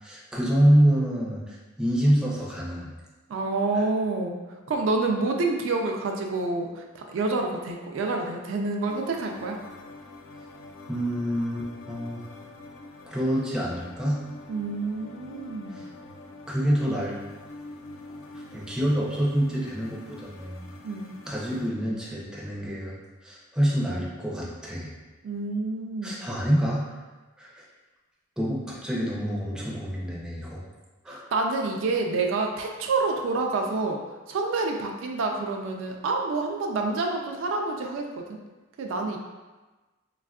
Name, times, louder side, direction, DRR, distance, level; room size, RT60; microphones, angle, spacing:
voice 1, 0.0-2.9 3.7-3.9 10.9-12.2 13.1-14.2 15.7-15.9 16.5-17.2 18.3-20.6 21.3-23.0 23.2-24.9 26.0-27.0 27.4-27.6 28.4-30.6 31.0-31.2, equal, 5° right, -5 dB, 0.5 m, -26 dB
voice 2, 3.3-4.4 4.7-9.6 14.5-15.8 20.8-21.1 25.2-26.2 31.1-34.0 34.3-38.4 38.8-39.2, right 3 dB, 70° right, 2 dB, 0.3 m, -28 dB
sound 1, 8.9-21.7, left 2 dB, 70° left, 0.4 m, -45 dB
3.4 x 2.3 x 2.2 m, 1.2 s
head